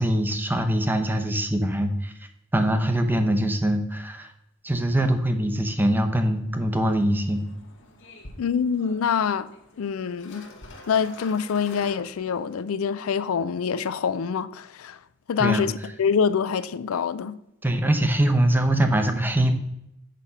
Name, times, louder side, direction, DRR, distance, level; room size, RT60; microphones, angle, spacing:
voice 1, 0.0-2.1 2.5-4.3 4.6-7.4 15.4-15.7 17.6-19.5, right 1 dB, 10° right, 0.7 m, -23 dB
sound 1, 6.9-12.6, left 2 dB, 60° left, 1.3 m, -47 dB
voice 2, 8.4-9.5 9.8-10.5 10.9-15.0 15.3-15.7 16.0-17.4, left 6 dB, 80° left, 0.4 m, -25 dB
6.6 x 5.1 x 5.5 m
head